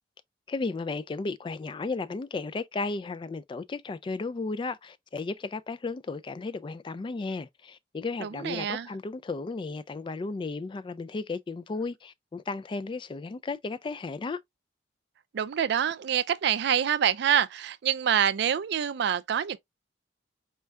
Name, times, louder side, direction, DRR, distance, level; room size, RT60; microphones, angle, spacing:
voice 1, 0.5-14.4, left 3 dB, 25° left, 0.3 m, -34 dB
voice 2, 8.2-8.9 15.3-19.6, right 9 dB, 65° right, 0.4 m, -26 dB
4.5 x 3.3 x 2.3 m
head